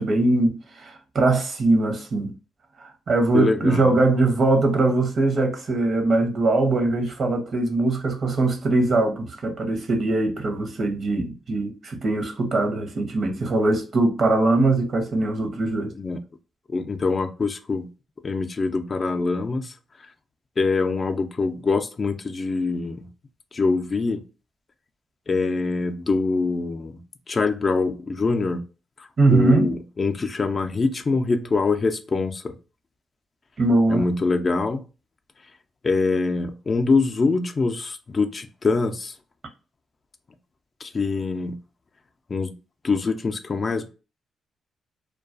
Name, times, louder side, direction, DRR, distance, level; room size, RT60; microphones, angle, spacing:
voice 1, 0.0-2.3 2.8-15.9 29.2-29.7 33.6-34.0, right 2 dB, 55° right, 0.8 m, -21 dB
voice 2, 3.3-3.9 16.0-16.2 16.7-17.9 18.2-19.7 20.6-23.1 23.5-24.2 25.3-27.0 27.3-28.6 29.3-32.5 33.9-34.8 35.8-39.1 40.8-41.6 42.3-42.5 42.8-43.9, left 3 dB, 45° left, 0.4 m, -24 dB
2.3 x 2.2 x 2.5 m
supercardioid pair, 55°, 0 cm